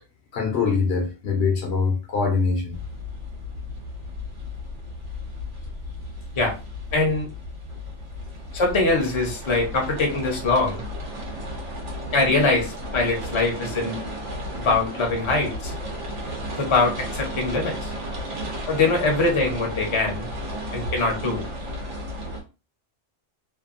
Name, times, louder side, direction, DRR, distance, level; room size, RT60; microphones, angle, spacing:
voice 1, 0.3-2.8, left 5 dB, 65° left, 3 dB, 0.9 m, -23 dB
sound 1, 2.7-22.4, equal, 80° right, 1.1 m, -34 dB
voice 2, 6.9-7.3 8.5-10.8 12.1-14.0 14.6-15.7 16.6-17.9 18.7-20.3 20.7-21.4, left 3 dB, 30° left, 1 dB, 0.6 m, -23 dB
2.7 x 2.2 x 2.4 m, 0.31 s
omnidirectional pair, 1.2 m